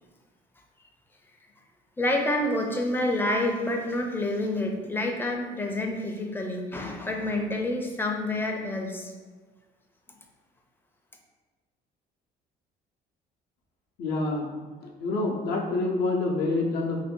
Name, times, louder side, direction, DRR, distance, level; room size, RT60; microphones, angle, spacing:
voice 1, 2.0-9.1, left 1 dB, 10° left, 2 dB, 0.4 m, -28 dB
voice 2, 14.0-14.5 14.8-17.0, left 2 dB, 75° left, 0 dB, 0.6 m, -27 dB
2.6 x 2.4 x 3.6 m, 1.4 s
cardioid pair, 110°, 17 cm